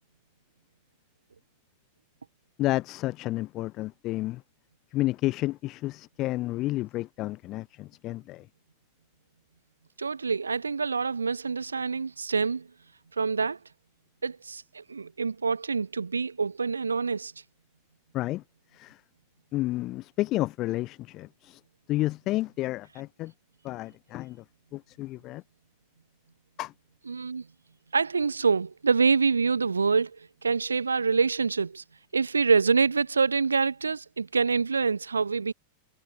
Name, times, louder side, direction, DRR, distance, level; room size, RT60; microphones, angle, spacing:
voice 1, 2.6-4.4 4.9-8.5 18.1-18.4 18.7-19.0 19.5-21.6 21.9-23.3 23.6-24.4 24.7-25.4 26.6-26.7, left 17 dB, 35° left, 7.4 m, -31 dB
voice 2, 10.0-12.7 13.2-13.6 14.2-17.3 27.1-27.5 27.9-30.1 30.4-31.8 32.1-35.5, right 5 dB, 75° right, 3.8 m, -26 dB
figure-of-eight pair, 90°, 0 cm